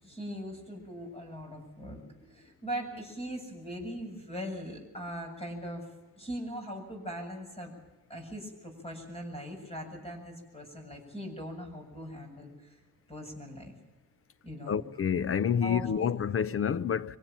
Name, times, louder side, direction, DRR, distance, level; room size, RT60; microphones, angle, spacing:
voice 1, 0.0-5.9 6.2-7.7 8.1-12.8 13.1-13.7 14.4-14.8 15.6-16.1, equal, 20° left, 7.3 m, -40 dB
voice 2, 14.7-17.2, left 8 dB, 40° left, 0.7 m, -28 dB
24.5 x 17.5 x 7.4 m
cardioid pair, 115°, 33 cm